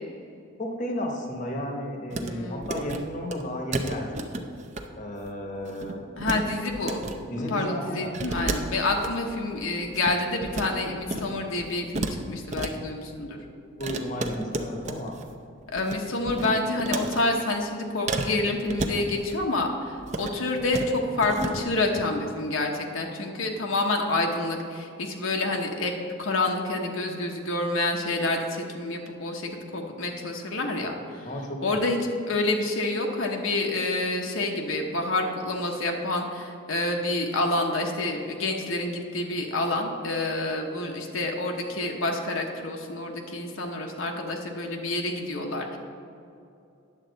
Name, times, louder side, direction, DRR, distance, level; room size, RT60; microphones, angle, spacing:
voice 1, 0.6-4.2 4.9-6.0 7.3-8.1 13.8-15.2 31.3-31.8, left 1 dB, 40° left, 2 dB, 0.9 m, -33 dB
sound 1, 2.1-2.3 2.6-3.0 3.3-3.4 3.7-4.8 5.1-5.3 5.6-6.4 6.7-7.2 8.1-9.1 9.6-10.7 11.0-11.3 11.6-12.7 13.8-15.3 15.6-16.0 16.3-17.2 18.1-19.4 20.0-20.3 20.6-20.9 21.2-21.6, right 2 dB, 35° right, 0.5 m, -32 dB
voice 2, 2.2-2.7 6.2-7.0 7.5-13.4 15.7-25.9 26.2-31.3 31.6-32.0 32.3-45.8, left 2 dB, 80° left, 2 dB, 1.0 m, -28 dB
9.9 x 7.3 x 4.0 m, 2.6 s
head